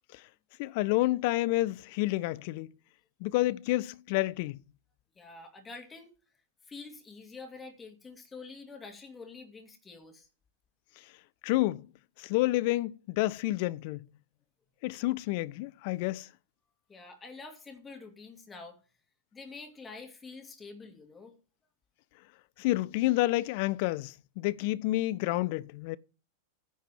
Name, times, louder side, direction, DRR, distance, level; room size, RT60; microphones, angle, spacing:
voice 1, 0.6-2.7 3.2-4.6 11.4-11.8 12.2-14.0 14.8-16.3 22.6-26.0, left 18 dB, 50° left, 0.5 m, -29 dB
voice 2, 5.2-6.1 6.7-10.3 16.9-18.8 19.3-21.3, left 4 dB, 15° left, 2.4 m, -47 dB
10.0 x 4.6 x 7.2 m
figure-of-eight pair, 90°, 0 cm